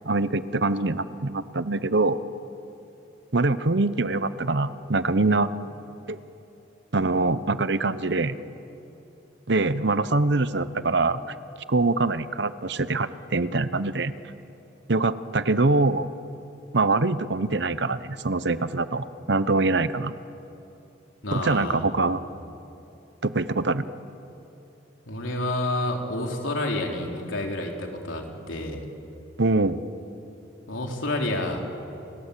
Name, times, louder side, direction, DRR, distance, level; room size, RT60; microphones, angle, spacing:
voice 1, 0.0-2.2 3.3-5.5 6.1-6.2 6.9-8.4 9.5-11.2 11.7-14.1 14.9-16.1 16.7-20.2 21.3-22.2 23.2-23.9 29.4-29.8, right 3 dB, 60° right, 13 dB, 0.9 m, -24 dB
voice 2, 21.2-21.8 25.1-28.8 30.7-31.6, left 1 dB, 85° left, 1 dB, 3.7 m, -29 dB
29.5 x 21.5 x 8.4 m, 2.9 s
head